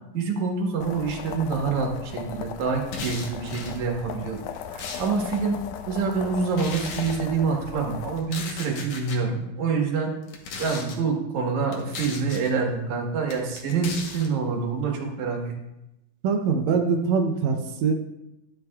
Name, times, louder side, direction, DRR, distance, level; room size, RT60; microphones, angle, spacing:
voice 1, 0.1-4.4 4.7-5.6 5.9-10.1 10.6-15.5, right 5 dB, 60° right, 0 dB, 2.6 m, -26 dB
sound 1, 0.8-8.2, left 8 dB, 90° left, 2.4 m, -38 dB
sound 2, 2.8-3.8 4.4-5.4 6.5-7.2 8.2-9.2 10.2-11.0 11.7-12.5 13.3-14.3, left 4 dB, 65° left, 2.1 m, -37 dB
voice 2, 16.2-17.9, right 5 dB, 80° right, 3 dB, 1.6 m, -23 dB
12.5 x 10.0 x 2.3 m, 0.92 s
omnidirectional pair, 4.0 m